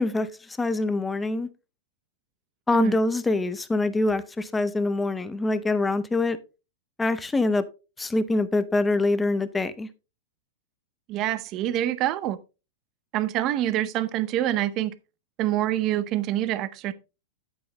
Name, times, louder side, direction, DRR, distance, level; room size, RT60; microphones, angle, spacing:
voice 1, 0.0-1.5 2.7-6.4 7.0-7.6 8.0-9.9, left 2 dB, 10° left, 0.6 m, -24 dB
voice 2, 11.1-12.4 13.1-14.9 15.4-16.9, right 13 dB, 30° right, 0.7 m, -26 dB
9.3 x 8.5 x 3.0 m
supercardioid pair, 155°, 0 cm